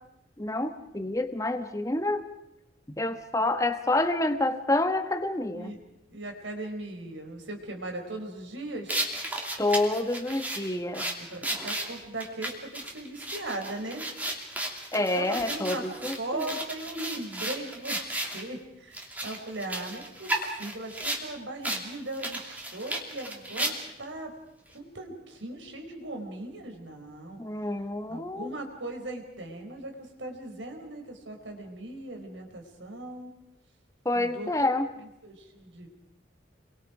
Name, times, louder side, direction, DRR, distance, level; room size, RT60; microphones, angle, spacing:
voice 1, 0.4-2.2 2.9-5.7 9.6-11.1 14.9-16.5 27.4-28.5 34.0-34.9, left 2 dB, 15° left, 8 dB, 1.4 m, -28 dB
voice 2, 6.1-9.0 11.2-14.0 15.1-15.9 16.2-20.3 20.6-24.3 24.7-27.4 28.1-33.3 34.1-34.5 35.0-35.9, right 2 dB, 80° right, 3 dB, 4.6 m, -38 dB
sound 1, 8.9-18.4 18.9-21.2 21.6-21.8 22.1-24.0, right 1 dB, 10° right, 2.6 m, -34 dB
29.5 x 23.0 x 5.1 m, 0.86 s
head